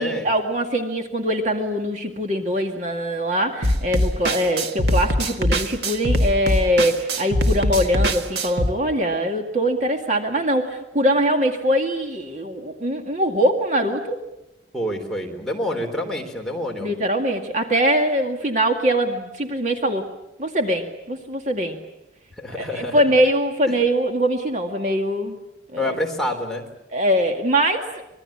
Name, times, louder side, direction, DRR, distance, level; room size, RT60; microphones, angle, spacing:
voice 1, 0.0-14.2 16.8-20.0 20.4-21.8 22.6-25.4 25.7-26.0 26.9-27.8, equal, 40° right, 3 dB, 2.2 m, -22 dB
sound 1, 3.6-8.7, equal, 65° right, 2.0 m, -22 dB
voice 2, 14.7-16.9 22.4-23.0 25.8-26.6, left 1 dB, 5° left, 0 dB, 3.6 m, -27 dB
26.0 x 21.5 x 8.8 m, 0.93 s
head